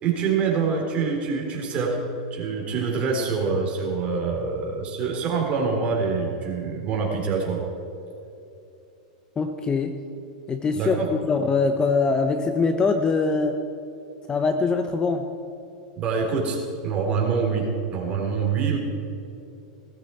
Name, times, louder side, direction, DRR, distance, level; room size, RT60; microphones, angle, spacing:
voice 1, 0.0-2.0 2.3-7.6 10.7-11.1 16.0-16.6 16.8-18.8, right 5 dB, 30° right, 0 dB, 3.8 m, -25 dB
voice 2, 9.4-10.0 10.5-13.6 14.3-15.3, left 4 dB, 20° left, 7 dB, 0.8 m, -23 dB
18.0 x 14.0 x 4.5 m, 2.8 s
supercardioid pair, 130°, 4 cm